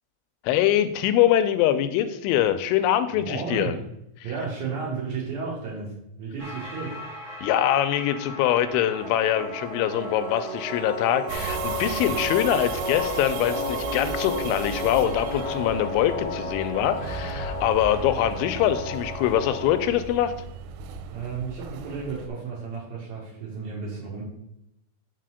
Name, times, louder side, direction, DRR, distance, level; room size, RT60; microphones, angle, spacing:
voice 1, 0.4-3.8 7.4-20.3, left 11 dB, 85° left, 10 dB, 2.8 m, -23 dB
voice 2, 3.1-3.8 4.2-7.0 7.3-7.4 21.1-24.2, right 5 dB, 65° right, -4 dB, 1.9 m, -33 dB
sound 1, 6.4-19.8, left 2 dB, 35° right, 0.5 m, -33 dB
sound 2, 11.3-22.3, right 6 dB, 90° right, 3.1 m, -35 dB
6.6 x 3.9 x 6.3 m, 0.83 s
omnidirectional pair, 5.6 m